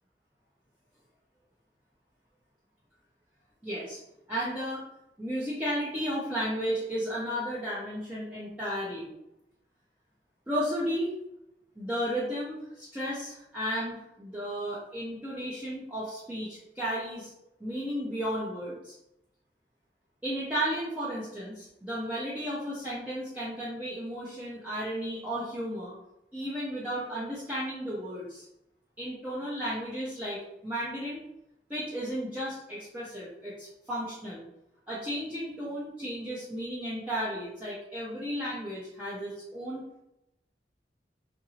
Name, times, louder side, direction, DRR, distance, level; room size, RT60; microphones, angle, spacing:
voice 1, 3.6-4.0 4.3-4.8 5.2-9.1 10.5-11.1 11.8-17.3 17.6-18.9 20.2-26.0 26.3-28.4 29.0-31.2 31.7-34.4 34.9-39.8, equal, 10° right, -10 dB, 0.6 m, -34 dB
2.9 x 2.6 x 2.7 m, 0.85 s
head